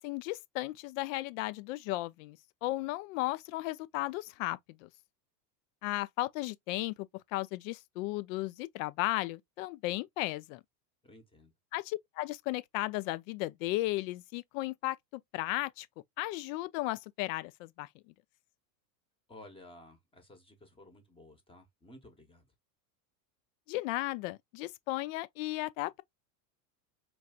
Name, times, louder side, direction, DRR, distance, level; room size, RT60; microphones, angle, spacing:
voice 1, 0.0-4.9 5.8-6.9 7.3-10.6 11.7-15.9 16.2-17.9 23.7-26.0, left 18 dB, 55° left, 0.5 m, -35 dB
voice 2, 11.0-11.5 19.3-22.5, left 1 dB, 10° left, 1.0 m, -54 dB
4.6 x 2.6 x 2.3 m
supercardioid pair, 135°, 49 cm